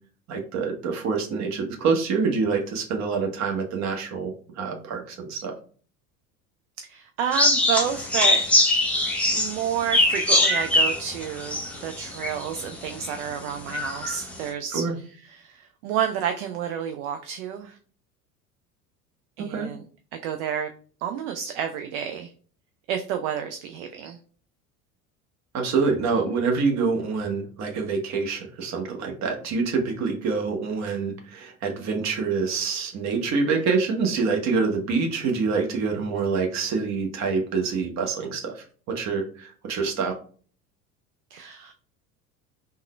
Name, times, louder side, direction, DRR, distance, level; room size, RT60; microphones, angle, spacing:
voice 1, 0.3-5.5 14.7-14.9 19.4-19.7 25.5-40.2, right 4 dB, 40° right, 3 dB, 0.9 m, -26 dB
voice 2, 6.8-8.5 9.3-14.8 15.2-17.8 19.4-19.8 20.2-20.7 21.0-22.3 22.9-24.2 41.3-41.7, right 8 dB, 55° right, 6 dB, 0.5 m, -30 dB
sound 1, 7.3-12.5 13.0-13.1 13.7-14.1, left 1 dB, 5° left, 0.7 m, -22 dB
3.6 x 2.2 x 3.1 m, 0.43 s
figure-of-eight pair, 70°, 44 cm